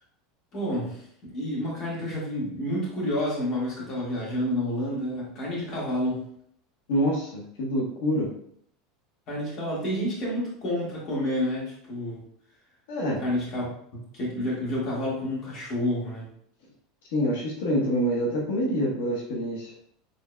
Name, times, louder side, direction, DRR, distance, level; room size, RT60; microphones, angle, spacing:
voice 1, 0.5-6.2 9.3-12.2 13.2-13.7 14.1-16.3, left 1 dB, 35° left, -5 dB, 1.8 m, -29 dB
voice 2, 6.9-8.3 12.9-13.2 17.1-19.7, equal, 80° left, -2 dB, 1.1 m, -26 dB
6.7 x 3.5 x 2.2 m, 0.67 s
supercardioid pair, 175°, 0 cm